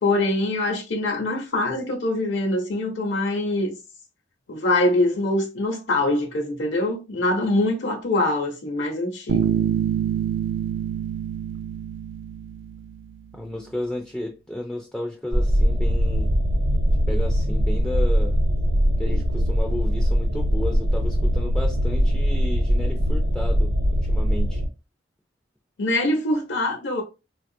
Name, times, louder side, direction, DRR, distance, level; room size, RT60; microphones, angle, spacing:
voice 1, 0.0-3.7 4.5-9.5 25.8-27.0, left 2 dB, 75° left, 0.8 m, -24 dB
Bass guitar, 9.3-13.0, right 8 dB, 80° right, 0.3 m, -26 dB
voice 2, 13.3-16.3 17.1-18.4 19.0-24.6, left 1 dB, 5° left, 0.3 m, -33 dB
sound 1, 15.3-24.7, equal, 60° right, 0.7 m, -21 dB
3.9 x 2.3 x 2.7 m
head